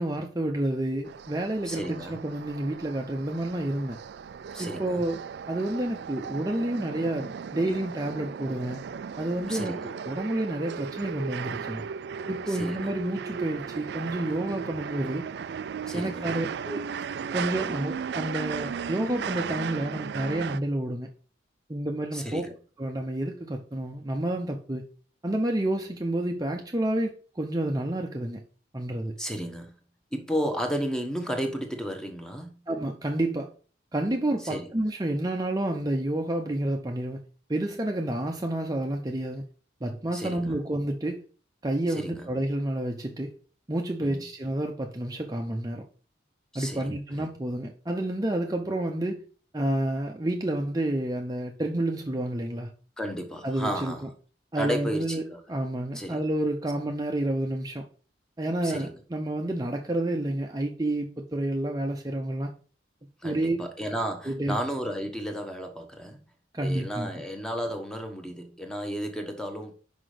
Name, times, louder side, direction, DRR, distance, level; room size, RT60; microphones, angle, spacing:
voice 1, 0.0-4.0 4.6-8.9 9.2-11.9 12.3-15.3 15.9-16.9 17.3-21.1 21.7-22.5 22.8-24.9 25.2-28.4 28.7-29.2 32.7-33.5 33.9-37.2 37.5-39.4 39.8-41.2 41.6-43.3 43.7-45.8 46.5-49.2 49.5-52.7 53.4-54.1 54.5-55.2 55.5-57.9 58.4-62.5 63.2-63.6 64.2-64.6 66.5-67.1, right 1 dB, 20° right, 0.6 m, -29 dB
sound 1, 1.0-20.6, right 6 dB, 60° right, 0.3 m, -36 dB
voice 2, 1.6-2.2 4.5-5.0 9.5-9.9 12.5-12.9 15.9-16.3 22.1-22.6 29.2-29.7 30.1-32.5 34.4-34.7 40.1-40.5 41.9-42.3 44.0-44.2 46.5-46.9 53.0-54.1 54.5-55.4 55.9-56.2 58.6-58.9 63.2-66.2 66.6-69.7, equal, 5° left, 1.0 m, -33 dB
6.0 x 5.1 x 4.9 m
head